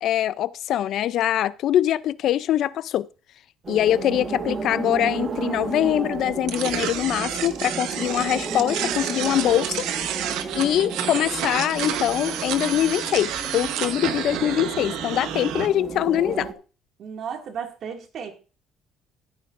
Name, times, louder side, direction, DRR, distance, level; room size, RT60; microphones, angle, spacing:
voice 1, 0.0-3.1 3.7-9.9 10.5-16.5, left 12 dB, 60° left, 0.4 m, -23 dB
sound 1, 3.6-16.5, right 5 dB, 35° right, 1.5 m, -33 dB
sound 2, 6.5-15.7, right 10 dB, 80° right, 1.0 m, -30 dB
voice 2, 17.0-18.3, right 7 dB, 55° right, 2.1 m, -34 dB
14.5 x 9.5 x 2.5 m
cardioid pair, 115°, 0 cm